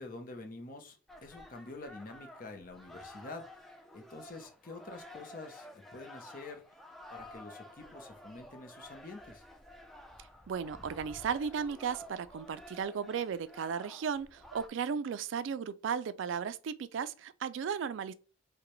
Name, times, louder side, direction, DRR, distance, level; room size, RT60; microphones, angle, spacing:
voice 1, 0.0-6.8 7.1-9.4, left 2 dB, 45° left, 0.8 m, -47 dB
sound 1, 1.1-14.7, left 1 dB, ahead, 0.4 m, -52 dB
voice 2, 10.5-18.1, right 7 dB, 75° right, 0.3 m, -35 dB
4.8 x 2.2 x 3.1 m
head